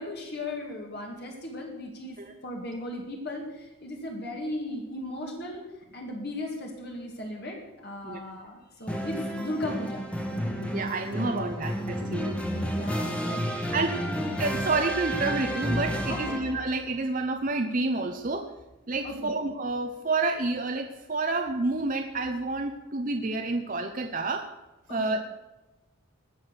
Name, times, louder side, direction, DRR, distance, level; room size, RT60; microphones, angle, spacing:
voice 1, 0.0-10.1 11.1-11.4 12.7-13.7 16.1-16.4 19.0-19.3 24.9-25.0, left 1 dB, 50° left, 1 dB, 2.0 m, -37 dB
sound 1, 8.9-16.7, equal, 5° left, 1.4 m, -31 dB
voice 2, 10.6-12.4 13.7-14.0 14.4-18.5 18.9-24.5 24.9-25.3, right 3 dB, 40° right, 5 dB, 0.7 m, -29 dB
20.0 x 7.1 x 6.4 m, 1.1 s
head